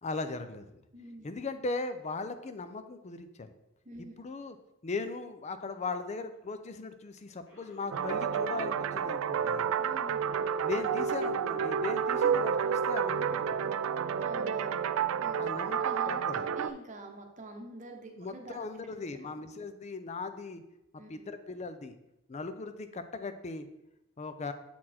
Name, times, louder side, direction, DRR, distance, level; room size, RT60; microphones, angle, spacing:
voice 1, 0.0-0.8 1.2-3.5 4.2-4.6 4.8-9.7 10.6-13.4 15.4-16.5 18.2-20.6 21.1-21.9 22.3-23.7 24.2-24.5, left 3 dB, 30° left, 10 dB, 0.5 m, -38 dB
voice 2, 0.9-1.3 3.8-4.1 9.8-10.3 14.2-14.8 15.2-15.4 15.7-16.2 16.5-18.6 19.2-19.3 21.0-21.1, right 2 dB, 35° right, 3 dB, 0.9 m, -46 dB
Cough, 6.3-6.4 7.5-8.6 8.8-9.0 9.5-9.6 10.2-10.3, left 1 dB, 75° left, 2.8 m, -58 dB
sound 1, 7.9-16.7, right 7 dB, 65° right, 0.3 m, -30 dB
7.5 x 4.3 x 4.2 m, 0.88 s
head